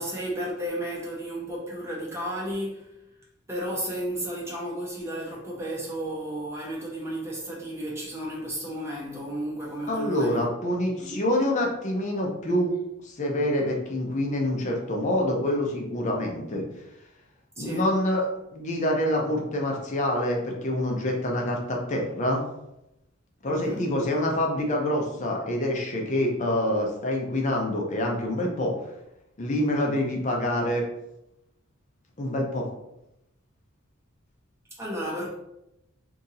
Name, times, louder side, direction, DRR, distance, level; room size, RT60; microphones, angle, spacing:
voice 1, 0.0-2.9 3.5-10.4 11.0-11.2 17.6-17.9 23.4-23.9 34.7-35.3, right 1 dB, 10° right, -4 dB, 0.8 m, -33 dB
voice 2, 9.9-12.7 13.0-16.7 17.6-18.2 18.5-22.4 23.4-28.7 29.4-30.9 32.2-32.7, left 1 dB, 35° left, 0 dB, 0.6 m, -26 dB
2.7 x 2.5 x 4.0 m, 0.87 s
head